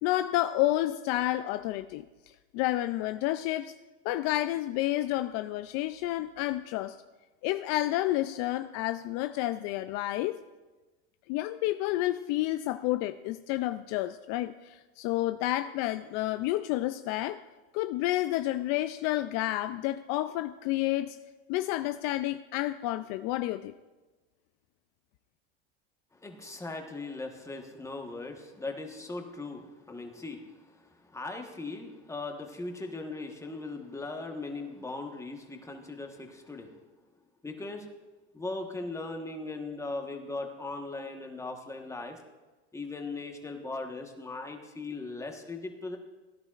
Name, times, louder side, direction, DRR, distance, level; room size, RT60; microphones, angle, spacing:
voice 1, 0.0-2.0 2.5-3.7 4.0-7.0 7.4-10.4 11.3-17.4 17.7-21.2 21.5-23.7, left 15 dB, 55° left, 0.4 m, -30 dB
voice 2, 26.1-36.7 37.4-37.9 38.3-42.2 42.7-46.0, left 3 dB, 10° left, 1.3 m, -39 dB
17.0 x 10.5 x 2.5 m
supercardioid pair, 115°, 31 cm